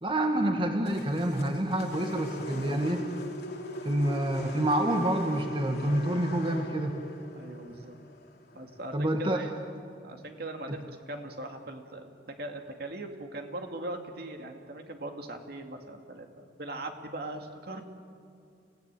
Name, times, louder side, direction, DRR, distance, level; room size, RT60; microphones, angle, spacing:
voice 1, 0.0-3.0 3.8-7.0 8.9-9.4, right 1 dB, 30° right, 3 dB, 1.7 m, -27 dB
sound 1, 0.9-9.1, left 1 dB, 60° left, 2.7 m, -42 dB
voice 2, 7.3-8.0 8.5-9.5 10.0-12.1 12.4-17.8, right 2 dB, 60° right, 4 dB, 2.3 m, -40 dB
29.0 x 16.5 x 9.1 m, 2.4 s
head